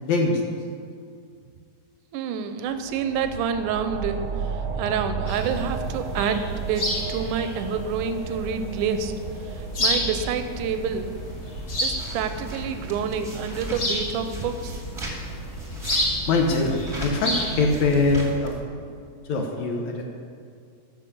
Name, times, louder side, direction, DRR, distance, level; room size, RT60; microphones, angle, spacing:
voice 1, 0.1-0.4 16.3-18.6 19.3-20.0, left 3 dB, 70° left, 1 dB, 2.3 m, -22 dB
voice 2, 2.1-9.1 9.4-11.1 11.8-14.8, right 6 dB, 90° right, 8 dB, 2.2 m, -28 dB
sound 1, 2.6-13.9, right 5 dB, 60° right, 1.5 m, -35 dB
sound 2, 5.3-18.3, equal, 35° left, 2.2 m, -31 dB
sound 3, 10.5-18.6, right 1 dB, 15° right, 1.2 m, -40 dB
13.0 x 6.4 x 6.8 m, 2.3 s
omnidirectional pair, 3.6 m